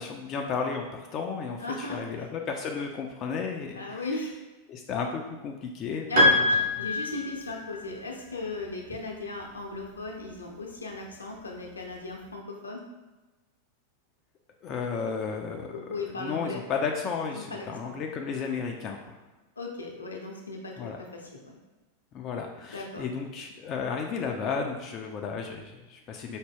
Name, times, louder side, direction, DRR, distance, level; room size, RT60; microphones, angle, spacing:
voice 1, 0.0-4.0 4.7-6.1 6.8-6.9 14.6-19.2 20.8-21.0 22.1-26.4, left 5 dB, 35° left, 2 dB, 0.3 m, -33 dB
voice 2, 1.6-2.3 3.7-4.3 6.1-12.8 15.7-16.6 17.3-18.0 19.6-21.6 22.7-23.1, left 2 dB, 75° left, 0 dB, 0.6 m, -37 dB
Piano, 6.2-7.8, left 2 dB, 55° right, 1.1 m, -24 dB
4.5 x 2.1 x 3.5 m, 1.2 s
figure-of-eight pair, 90°, 0 cm